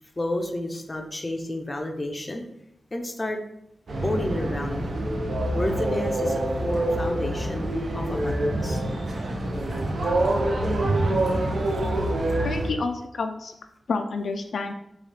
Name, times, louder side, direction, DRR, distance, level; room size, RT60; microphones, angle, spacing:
voice 1, 0.2-2.4 2.9-3.4 4.0-4.9 5.5-8.8, left 1 dB, 20° left, 3 dB, 0.5 m, -30 dB
sound 1, 3.9-12.7, right 1 dB, 60° right, 0.6 m, -26 dB
voice 2, 12.4-13.5 13.9-14.7, left 4 dB, 75° left, 5 dB, 0.3 m, -29 dB
6.3 x 2.4 x 3.3 m, 0.79 s
wide cardioid pair, 155°, 0 cm